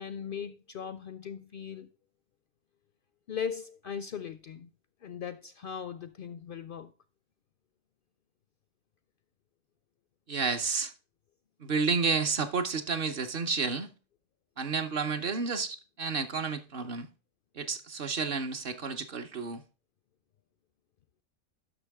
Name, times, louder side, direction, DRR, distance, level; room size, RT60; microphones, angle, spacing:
voice 1, 0.0-1.9 3.3-4.7 5.0-6.9, left 7 dB, 60° left, 0.6 m, -38 dB
voice 2, 10.3-10.9 11.6-13.9 14.6-17.1 17.5-19.6, right 5 dB, 55° right, 1.0 m, -31 dB
11.0 x 6.1 x 3.5 m
omnidirectional pair, 1.3 m